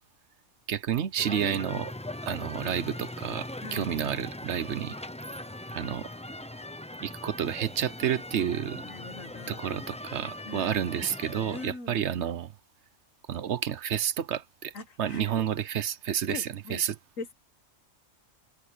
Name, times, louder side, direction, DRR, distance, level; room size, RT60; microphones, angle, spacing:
voice 1, 0.7-1.9 2.2-5.0 5.7-6.1 7.0-8.8 9.5-12.5 13.3-14.7 15.0-16.9, right 9 dB, 65° right, 1.0 m, -30 dB
sound 1, 1.2-11.7, left 1 dB, 5° left, 0.6 m, -40 dB
voice 2, 3.6-3.9 8.9-9.7 10.5-10.8 11.5-12.1 14.7-15.4 16.3-16.8 17.2-17.3, left 4 dB, 90° left, 1.8 m, -41 dB
omnidirectional pair, 1.3 m